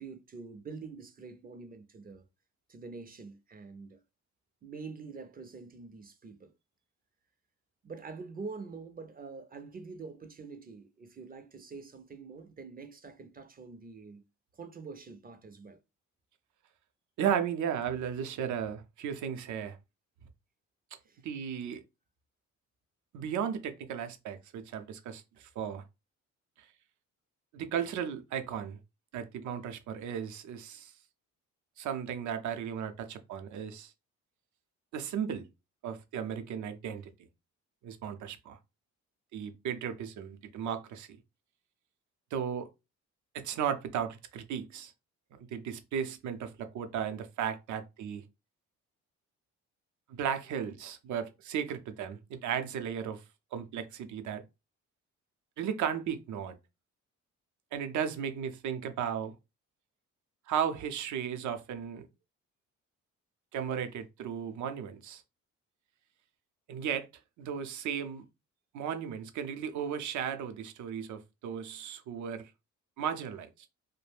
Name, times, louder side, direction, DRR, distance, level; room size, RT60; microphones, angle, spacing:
voice 1, 0.0-2.3 2.7-4.0 4.6-6.5 7.8-14.2 14.5-15.8 21.1-21.2, right 4 dB, 30° right, 0.4 m, -45 dB
voice 2, 17.2-19.8 21.2-21.8 23.1-25.8 27.5-28.8 29.1-30.9 31.8-33.9 34.9-35.5 35.8-37.0 37.8-38.6 39.3-41.1 42.3-42.7 43.3-44.9 45.3-48.2 50.1-53.2 53.5-54.4 55.6-56.6 57.7-59.3 60.5-62.1 63.5-65.2 66.7-67.1 67.4-68.2 68.7-72.5 73.0-73.5, right 8 dB, 75° right, 0.6 m, -35 dB
2.4 x 2.1 x 3.3 m
cardioid pair, 90°, 30 cm